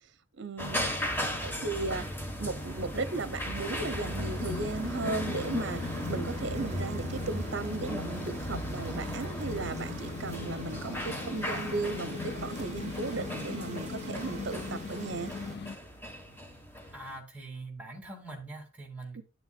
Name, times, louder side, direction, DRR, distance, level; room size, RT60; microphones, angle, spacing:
voice 1, 0.4-0.9 1.4-2.0 2.4-5.8 6.1-15.3 19.1-19.2, right 3 dB, 60° right, 0.7 m, -36 dB
sound 1, 0.6-17.2, equal, 10° left, 1.4 m, -37 dB
sound 2, 3.5-15.6, right 2 dB, 35° right, 0.9 m, -46 dB
sound 3, 4.4-15.8, left 4 dB, 55° left, 0.5 m, -40 dB
voice 2, 16.9-19.2, right 2 dB, 5° right, 2.5 m, -43 dB
11.0 x 7.1 x 2.4 m
head